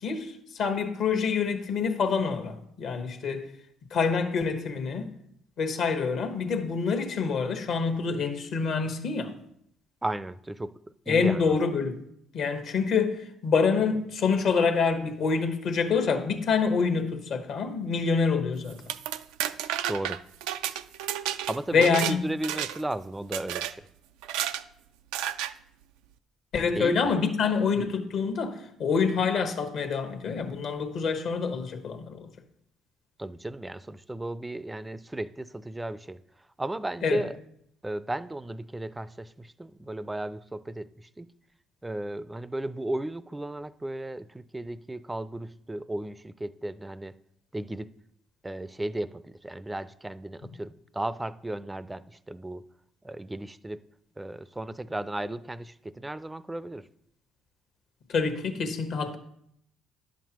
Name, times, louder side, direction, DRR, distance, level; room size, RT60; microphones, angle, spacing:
voice 1, 0.0-3.5 3.9-5.1 5.6-9.3 11.1-11.9 12.3-18.8 21.7-22.2 26.5-32.3 37.0-37.2 58.1-59.2, left 5 dB, 65° left, 1.2 m, -26 dB
voice 2, 10.0-10.7 11.1-11.5 19.9-20.2 21.5-23.9 26.8-27.1 33.2-36.2 36.6-37.3 37.8-41.3 41.8-47.1 47.5-47.9 48.4-52.6 53.0-53.8 54.2-56.9, right 1 dB, 15° right, 0.4 m, -35 dB
sound 1, 18.7-22.2 22.4-22.9 23.3-23.7 24.2-24.6 25.1-25.5, right 11 dB, 85° right, 0.3 m, -31 dB
10.5 x 7.3 x 3.0 m
supercardioid pair, 70°, 0 cm